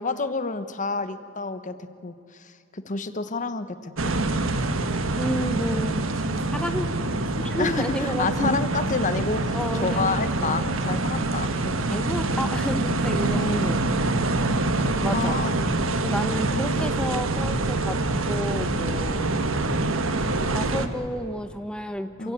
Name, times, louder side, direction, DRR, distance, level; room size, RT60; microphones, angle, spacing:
voice 1, 0.0-4.1 4.4-4.8 7.6-11.6 13.2-13.8 14.8-15.6 16.4-16.9 22.2-22.3, left 4 dB, 40° left, 11 dB, 1.0 m, -30 dB
sound 1, 4.0-20.9, right 2 dB, 75° right, 1.4 m, -25 dB
voice 2, 5.2-6.1 6.5-6.9 7.4-8.6 9.5-11.0 11.6-13.8 15.0-15.4 16.0-18.0 18.3-19.4 20.4-22.3, equal, 5° left, 8 dB, 0.9 m, -31 dB
27.5 x 17.0 x 8.3 m, 2.7 s
head